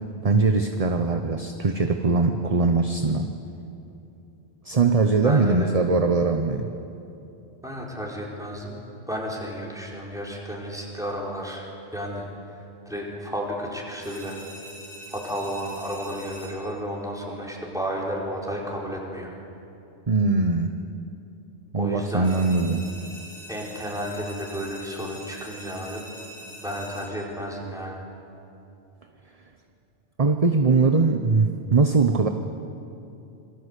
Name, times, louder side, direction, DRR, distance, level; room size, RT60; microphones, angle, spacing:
voice 1, 0.2-3.3 4.6-6.7 20.1-20.8 21.7-22.8 30.2-32.3, right 3 dB, 35° right, 6 dB, 1.0 m, -21 dB
voice 2, 5.2-5.7 7.6-8.8 9.1-11.7 11.9-12.3 12.8-14.4 15.1-19.3 21.7-22.3 23.5-26.0 26.6-28.0, equal, 5° right, -3 dB, 4.9 m, -32 dB
sound 1, 14.0-16.9 22.2-27.4, equal, 80° right, 5.0 m, -44 dB
27.0 x 22.0 x 8.3 m, 2.8 s
omnidirectional pair, 1.2 m